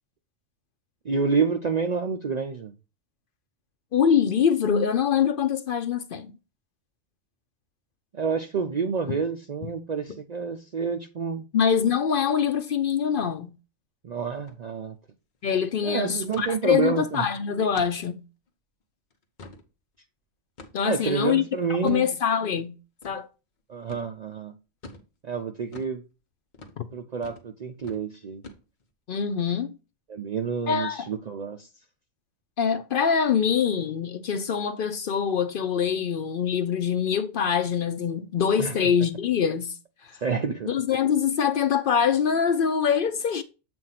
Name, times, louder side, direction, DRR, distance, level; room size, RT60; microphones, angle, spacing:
voice 1, 1.1-2.7 8.2-11.4 14.0-15.0 15.8-17.3 20.8-22.1 23.7-24.5 25.2-26.0 26.9-28.4 30.1-31.7 38.6-38.7 40.2-40.7, right 5 dB, 75° right, 0.3 m, -28 dB
voice 2, 3.9-6.3 11.5-13.5 15.4-18.2 20.7-21.4 21.8-22.7 23.0-23.3 26.8-26.9 29.1-29.7 30.7-31.1 32.6-39.8 40.0-40.2 40.7-43.4, left 7 dB, 60° left, 0.5 m, -24 dB
sound 1, 14.4-14.6 14.9-15.0 15.3-15.6 16.3-16.5 17.0-17.1 17.7-18.0 18.5-18.6 19.1-19.7 20.6-20.9 21.8-22.0 23.0-23.2 23.9-24.1 24.8-25.1 25.7-26.0 26.5-26.8 27.2-27.5 27.8-28.0 28.4-28.9, left 2 dB, 40° left, 0.9 m, -45 dB
7.6 x 2.6 x 5.6 m
omnidirectional pair, 1.4 m